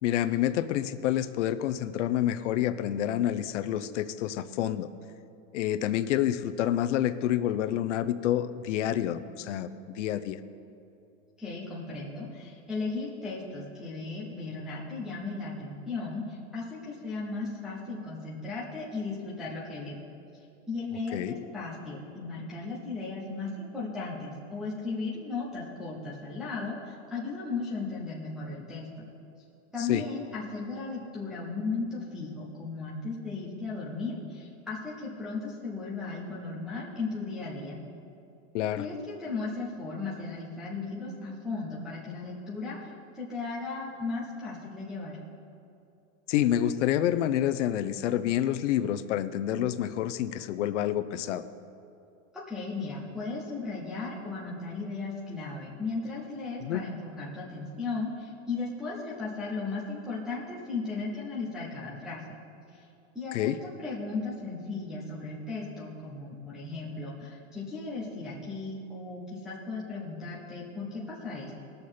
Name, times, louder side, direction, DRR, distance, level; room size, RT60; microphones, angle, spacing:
voice 1, 0.0-4.9 5.5-10.4 21.1-21.3 29.8-30.0 38.5-38.9 46.3-51.4 56.6-56.8 63.3-63.6, left 11 dB, 65° left, 12 dB, 0.7 m, -28 dB
voice 2, 11.4-20.0 20.7-29.1 29.7-37.8 38.8-45.2 52.5-62.2 62.7-62.9 63.1-71.6, left 3 dB, ahead, -7 dB, 0.3 m, -36 dB
19.5 x 6.7 x 4.3 m, 2.7 s
supercardioid pair, 165°, 39 cm